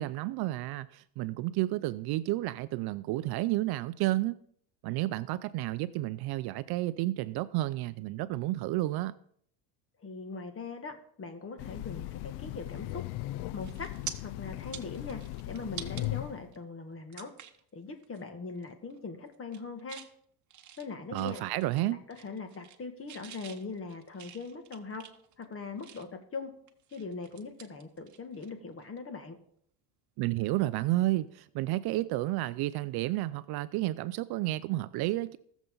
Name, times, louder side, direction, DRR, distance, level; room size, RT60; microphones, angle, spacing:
voice 1, 0.0-4.4 4.8-9.1 21.1-22.0 30.2-35.4, right 17 dB, 55° right, 0.5 m, -31 dB
voice 2, 10.0-10.9 11.2-13.0 13.5-13.9 14.2-15.2 15.5-17.3 17.7-20.0 20.8-21.4 21.9-25.0 25.4-26.1 26.3-26.5 26.9-29.4, left 4 dB, 30° left, 2.0 m, -41 dB
Train, 11.6-16.5, left 17 dB, 60° left, 0.5 m, -38 dB
sound 1, 13.1-13.3 13.6-14.1 14.6-16.1 16.5-16.6 17.1-17.6 18.0-18.2 18.6-19.0 19.3-20.1 20.5-21.8 22.1-22.8 23.1-26.2 26.7-28.5 28.8-29.0 30.9-31.0, right 10 dB, 35° right, 1.2 m, -46 dB
19.0 x 7.1 x 3.9 m
supercardioid pair, 105°, 47 cm